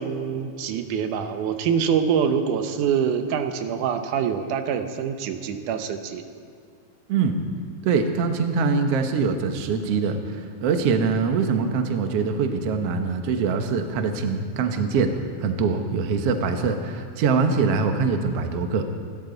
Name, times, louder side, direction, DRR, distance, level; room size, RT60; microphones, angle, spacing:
voice 1, 0.0-6.2, right 7 dB, 85° right, 7 dB, 2.4 m, -25 dB
voice 2, 7.8-15.1 15.4-18.8, right 5 dB, 60° right, 5 dB, 1.9 m, -23 dB
28.0 x 13.0 x 4.0 m, 2.2 s
omnidirectional pair, 3.5 m